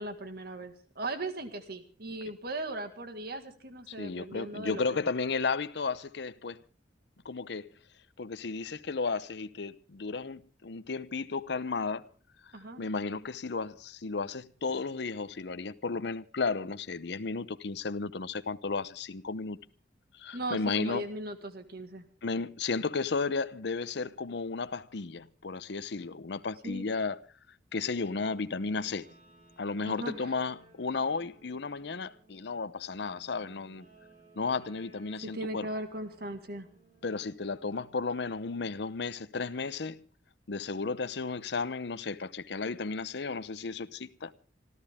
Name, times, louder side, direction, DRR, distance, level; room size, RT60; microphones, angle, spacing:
voice 1, 0.0-4.8 12.5-12.8 20.3-22.1 22.3-22.5 26.6-26.9 29.8-30.3 35.2-36.7, right 2 dB, 55° right, 1.9 m, -38 dB
voice 2, 3.9-6.6 7.2-7.7 8.2-12.0 12.8-19.6 20.1-21.0 22.2-27.2 27.7-29.1 29.6-33.9 34.3-35.7 37.0-40.0 40.5-44.3, left 4 dB, 65° left, 0.7 m, -34 dB
Guitar, 28.2-38.8, right 2 dB, 40° right, 5.1 m, -60 dB
26.5 x 13.5 x 3.6 m
head